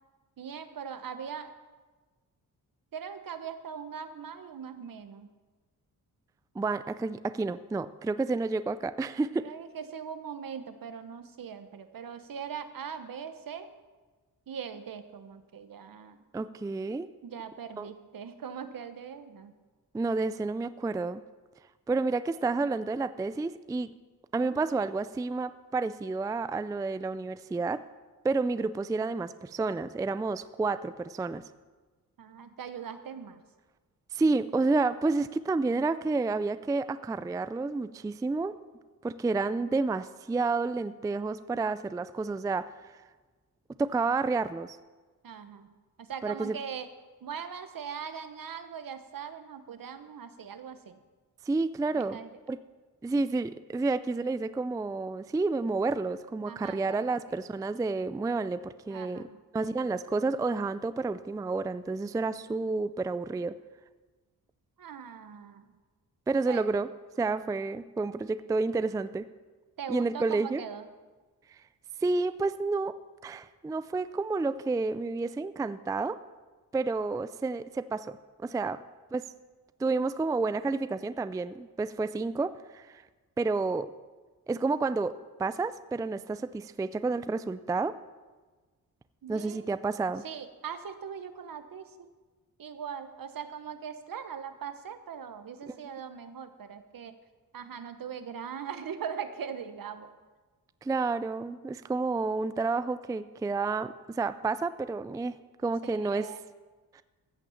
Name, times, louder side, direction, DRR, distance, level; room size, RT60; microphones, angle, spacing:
voice 1, 0.4-1.5 2.9-5.3 9.4-13.7 14.5-16.2 17.2-19.5 32.2-33.4 45.2-45.7 46.0-46.9 47.2-51.0 51.9-52.3 56.5-57.2 58.9-59.2 64.8-65.7 66.5-66.7 69.8-70.9 89.2-89.7 90.2-92.1 92.6-97.1 97.5-100.1 105.8-106.4, right 7 dB, 65° right, 10 dB, 1.1 m, -40 dB
voice 2, 6.6-9.5 16.3-17.1 17.8-17.9 19.9-21.2 21.9-23.9 24.3-27.8 28.2-31.4 34.1-38.6 39.0-42.7 43.8-44.8 46.2-46.6 51.5-52.2 52.5-52.6 53.0-59.3 59.5-63.6 66.3-66.9 67.2-69.3 69.9-70.6 72.0-73.0 73.2-76.2 76.7-78.8 79.1-79.2 79.8-83.0 83.4-83.9 84.5-88.0 89.3-90.2 95.7-95.8 100.8-105.4 105.6-106.3 106.9-107.0, right 3 dB, 10° right, 13 dB, 0.3 m, -30 dB
15.0 x 6.1 x 7.0 m, 1.3 s
cardioid pair, 85°, 37 cm